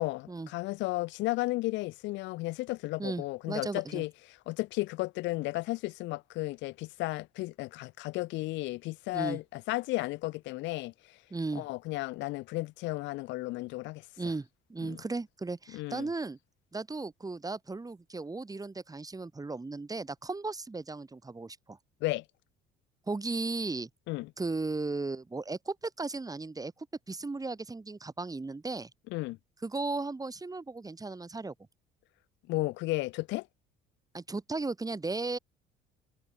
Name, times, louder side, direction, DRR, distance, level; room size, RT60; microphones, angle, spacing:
voice 1, 0.0-4.1 4.5-11.2 11.5-14.0 14.8-15.0 15.7-16.1 22.0-22.2 24.1-24.3 29.1-29.4 32.5-33.5, left 20 dB, 75° left, 6.0 m, -34 dB
voice 2, 3.0-4.0 9.1-9.4 11.3-11.6 14.2-16.4 16.7-21.8 23.1-23.9 24.4-28.9 29.6-31.5 34.1-35.4, right 3 dB, 20° right, 4.1 m, -36 dB
supercardioid pair, 75°, 19 cm